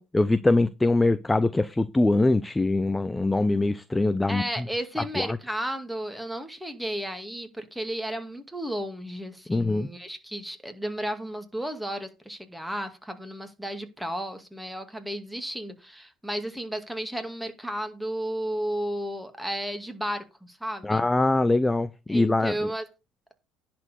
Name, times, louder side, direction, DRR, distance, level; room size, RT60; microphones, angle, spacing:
voice 1, 0.1-4.4 5.2-5.4 9.5-9.9 20.8-22.5, left 2 dB, 15° left, 0.6 m, -23 dB
voice 2, 4.3-21.0 22.1-22.8, right 1 dB, 5° right, 2.2 m, -33 dB
10.5 x 4.5 x 6.8 m
hypercardioid pair, 75°, 0 cm